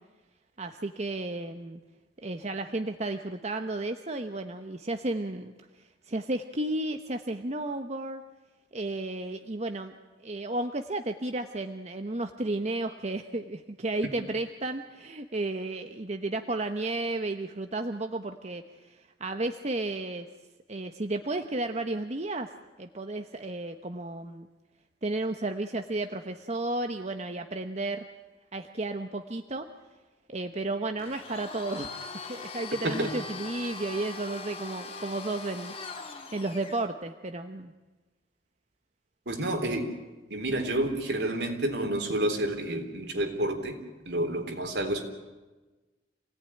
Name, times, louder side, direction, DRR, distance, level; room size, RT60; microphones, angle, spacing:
voice 1, 0.6-1.8 2.2-8.2 8.7-20.3 20.7-22.5 22.8-24.5 25.0-28.0 28.5-29.7 30.3-37.7, right 2 dB, 40° right, 6 dB, 1.0 m, -33 dB
Domestic sounds home sounds, 31.0-36.9, left 4 dB, 35° left, 2.0 m, -41 dB
voice 2, 39.3-39.9 40.3-43.8 44.1-45.0, right 1 dB, 70° right, 5 dB, 3.8 m, -29 dB
28.0 x 17.5 x 10.0 m, 1.2 s
head